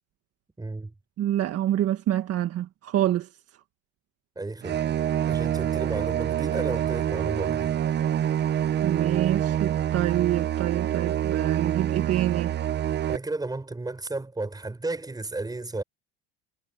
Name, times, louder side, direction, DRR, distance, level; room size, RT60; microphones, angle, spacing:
voice 1, 0.6-0.9 4.3-4.8 5.3-7.8 13.1-15.8, right 2 dB, 10° right, 6.6 m, -33 dB
voice 2, 1.2-3.3 8.8-12.5, right 12 dB, 50° right, 1.6 m, -26 dB
sound 1, 4.6-13.2, right 10 dB, 35° right, 0.7 m, -26 dB
supercardioid pair, 95°, 32 cm